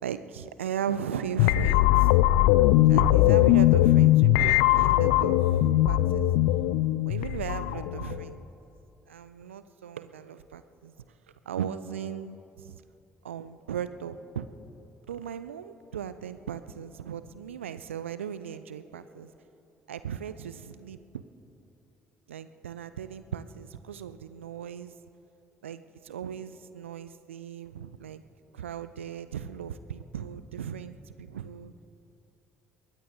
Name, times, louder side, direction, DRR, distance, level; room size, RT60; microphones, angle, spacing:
voice 1, 0.0-2.1 2.9-6.3 7.1-8.4 9.1-10.9 11.5-12.8 13.2-14.5 15.1-19.3 19.9-21.0 22.3-24.9 25.6-28.2 28.5-31.7, right 8 dB, 80° right, 13 dB, 0.4 m, -37 dB
sound 1, 1.4-8.3, left 15 dB, 65° left, 0.4 m, -21 dB
22.0 x 18.0 x 3.5 m, 2.8 s
figure-of-eight pair, 50°, 7 cm